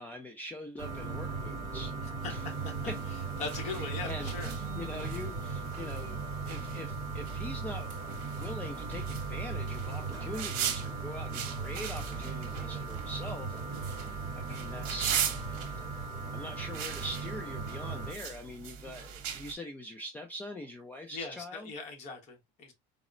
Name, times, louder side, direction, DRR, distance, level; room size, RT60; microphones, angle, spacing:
voice 1, 0.0-1.9 2.3-2.4 2.9-3.0 3.7-4.3 4.8-6.2 6.4-7.9 8.2-14.0 14.4-15.6 16.3-21.7, left 1 dB, 10° left, 0.4 m, -43 dB
sound 1, 0.8-18.1, right 4 dB, 20° right, 0.9 m, -38 dB
voice 2, 2.0-2.7 3.4-4.5 21.1-22.7, left 4 dB, 45° left, 1.1 m, -40 dB
sound 2, 2.2-19.5, right 9 dB, 75° right, 0.8 m, -40 dB
4.0 x 2.0 x 2.4 m
cardioid pair, 155°, 17 cm